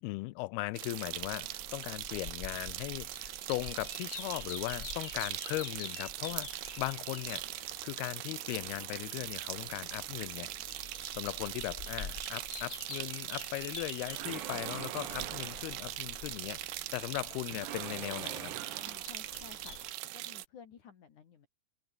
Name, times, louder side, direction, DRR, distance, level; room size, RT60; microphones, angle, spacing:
voice 1, 0.0-10.5 11.2-16.6 16.9-18.5, left 21 dB, 90° left, 2.6 m, -38 dB
sound 1, 0.7-19.9, left 5 dB, 30° left, 1.7 m, -49 dB
sound 2, 0.8-20.5, right 16 dB, 85° right, 3.0 m, -41 dB
sound 3, 14.1-15.9 17.5-19.3, right 12 dB, 60° right, 2.6 m, -43 dB
voice 2, 18.8-19.8 20.1-21.5, left 7 dB, 55° left, 3.4 m, -54 dB
omnidirectional pair, 4.4 m